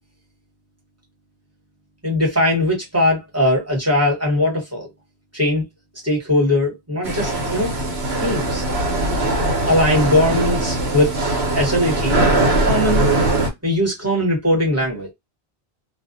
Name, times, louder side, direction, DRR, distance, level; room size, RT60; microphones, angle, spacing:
voice 1, 2.0-4.9 5.3-5.6 6.0-7.7 8.2-8.6 9.7-11.1 11.6-12.3 12.7-13.1 13.6-15.1, left 1 dB, 15° right, 1.0 m, -19 dB
sound 1, 7.0-13.5, right 2 dB, 85° right, 1.0 m, -20 dB
2.4 x 2.1 x 2.5 m
omnidirectional pair, 1.1 m